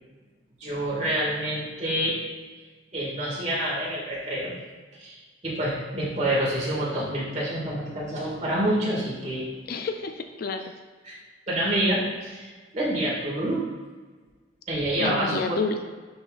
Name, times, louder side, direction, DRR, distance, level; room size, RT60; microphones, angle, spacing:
voice 1, 0.6-2.2 2.9-4.5 5.0-5.2 5.4-9.4 11.0-11.2 11.5-13.6 14.7-15.6, right 1 dB, 35° right, -5 dB, 1.9 m, -27 dB
voice 2, 9.7-10.7 15.0-15.8, left 4 dB, 50° left, 6 dB, 0.4 m, -30 dB
11.0 x 3.9 x 2.4 m, 1.4 s
head